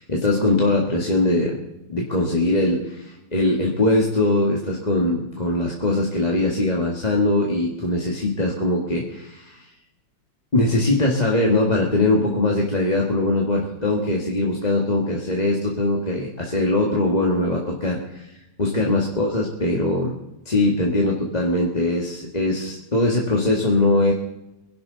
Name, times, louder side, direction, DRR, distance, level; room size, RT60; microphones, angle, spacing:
voice 1, 0.0-1.6 1.9-9.7 10.5-18.3 18.6-20.2 20.5-24.1, left 2 dB, 20° left, -2 dB, 1.8 m, -21 dB
24.0 x 11.5 x 4.0 m, 0.90 s
omnidirectional pair, 2.0 m